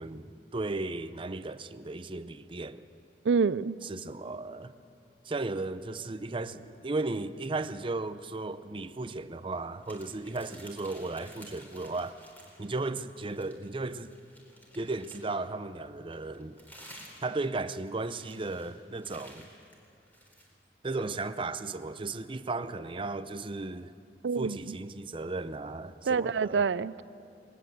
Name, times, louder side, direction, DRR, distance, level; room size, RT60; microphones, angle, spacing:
voice 1, 0.0-2.8 3.8-4.7 5.3-12.2 12.6-14.2 14.7-16.6 17.2-19.5 20.8-23.9 24.4-26.6, right 3 dB, 30° right, 0.6 m, -35 dB
voice 2, 3.2-3.8 24.2-24.8 26.1-27.0, right 5 dB, 90° right, 0.4 m, -27 dB
sound 1, 9.8-12.7 13.1-15.4 16.1-20.5, equal, 10° left, 4.0 m, -53 dB
20.5 x 19.5 x 7.7 m
head